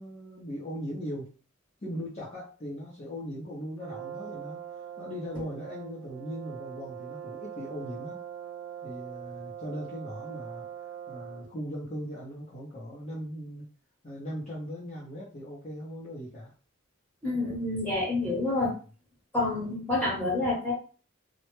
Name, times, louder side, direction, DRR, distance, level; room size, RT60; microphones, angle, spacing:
voice 1, 0.0-1.3 1.8-8.2 8.8-13.7 14.0-16.5 18.6-18.8, equal, 35° left, -7 dB, 0.5 m, -39 dB
Brass instrument, 3.8-11.6, right 9 dB, 85° right, 0.3 m, -42 dB
voice 2, 17.2-18.7 19.3-20.7, left 2 dB, 5° left, -6 dB, 1.1 m, -28 dB
2.1 x 2.0 x 3.0 m, 0.38 s
head